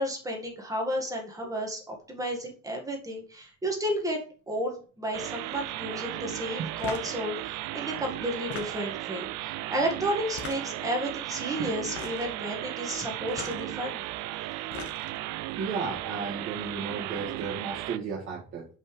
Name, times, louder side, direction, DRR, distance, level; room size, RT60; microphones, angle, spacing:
voice 1, 0.0-14.0, equal, 10° right, 1 dB, 1.8 m, -32 dB
sound 1, 5.1-18.0, right 16 dB, 65° right, 0.5 m, -36 dB
sound 2, 6.8-7.1 8.3-9.0 10.3-10.9 11.8-12.3 13.3-13.6 14.5-15.2, left 6 dB, 50° left, 1.5 m, -40 dB
voice 2, 15.6-18.7, right 5 dB, 40° right, -5 dB, 1.7 m, -34 dB
5.6 x 5.5 x 5.0 m, 0.39 s
cardioid pair, 160°, 31 cm